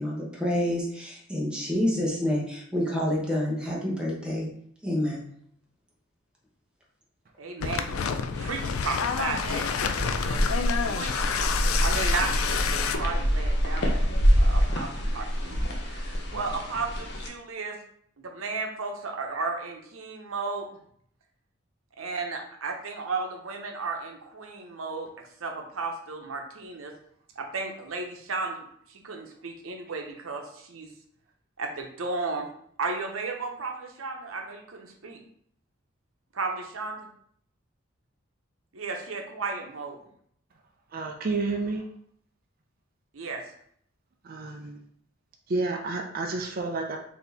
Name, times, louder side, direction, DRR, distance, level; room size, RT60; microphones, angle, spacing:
voice 1, 0.0-4.5 4.8-5.3, left 1 dB, 5° right, -4 dB, 1.0 m, -28 dB
voice 2, 7.4-8.1 8.4-10.4 10.8-11.1 11.6-13.9 14.4-15.6 15.9-17.8 18.2-20.7 22.0-25.1 25.4-26.9 27.4-28.6 28.9-30.9 31.6-32.5 32.8-35.2 36.3-37.1 38.7-40.0 43.1-43.4, right 3 dB, 90° right, 2 dB, 0.8 m, -34 dB
sound 1, 7.6-13.0, left 6 dB, 90° left, 0.3 m, -29 dB
sound 2, 8.3-17.3, equal, 55° left, 0.7 m, -26 dB
voice 3, 40.9-41.8 44.3-44.8 45.5-47.0, right 3 dB, 45° right, 2 dB, 0.4 m, -30 dB
4.1 x 2.8 x 3.4 m, 0.65 s
head